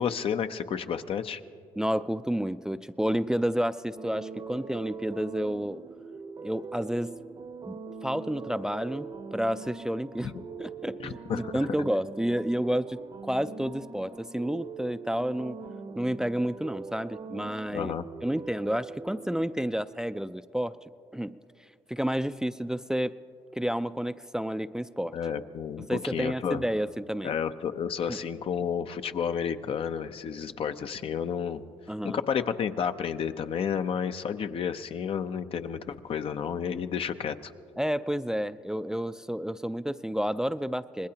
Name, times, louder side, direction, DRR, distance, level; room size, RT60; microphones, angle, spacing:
voice 1, 0.0-1.4 11.0-11.5 17.7-18.0 25.1-26.6 27.2-31.6 32.0-37.5, left 7 dB, 60° left, 9 dB, 0.7 m, -31 dB
voice 2, 1.8-5.8 6.4-7.2 7.6-10.3 10.6-15.6 16.0-17.9 18.2-20.8 21.1-23.2 23.5-25.2 25.8-27.3 28.1-28.2 31.9-32.2 37.8-41.1, equal, 5° right, 12 dB, 0.4 m, -30 dB
sound 1, 3.9-19.4, right 5 dB, 45° right, 0.8 m, -42 dB
25.0 x 19.5 x 2.9 m, 2.4 s
supercardioid pair, 65°, 11 cm